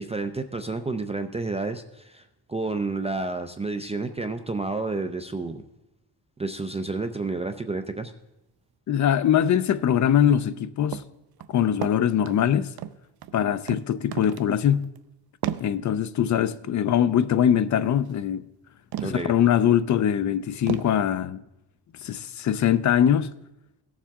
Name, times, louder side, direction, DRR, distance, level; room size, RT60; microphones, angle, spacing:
voice 1, 0.0-2.2 2.5-5.6 6.4-8.1 19.0-19.3, right 3 dB, 15° right, 0.4 m, -30 dB
voice 2, 8.9-11.0 11.5-12.7 13.3-14.9 15.6-18.4 19.0-21.4 22.0-23.3, left 9 dB, 45° left, 0.5 m, -22 dB
sound 1, 10.9-11.1 11.4-12.4 12.8-13.4 13.7-13.8 14.1-14.5 14.8-15.0 15.4-15.7 18.1-18.2 18.9-19.3 19.8-19.9 20.7-21.0, right 11 dB, 65° right, 0.6 m, -33 dB
17.0 x 7.3 x 3.5 m
wide cardioid pair, 165°, 41 cm